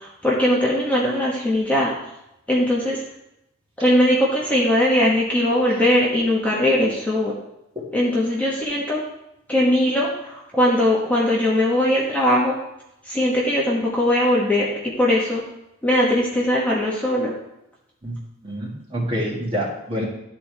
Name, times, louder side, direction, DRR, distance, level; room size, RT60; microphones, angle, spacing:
voice 1, 0.0-1.9 2.5-3.0 3.8-7.3 7.9-9.0 9.5-10.1 10.5-12.6 13.1-15.4 15.8-17.3, left 1 dB, 10° left, -5 dB, 1.2 m, -20 dB
voice 2, 18.0-20.0, equal, 25° right, -4 dB, 1.9 m, -27 dB
12.0 x 4.3 x 3.4 m, 0.86 s
head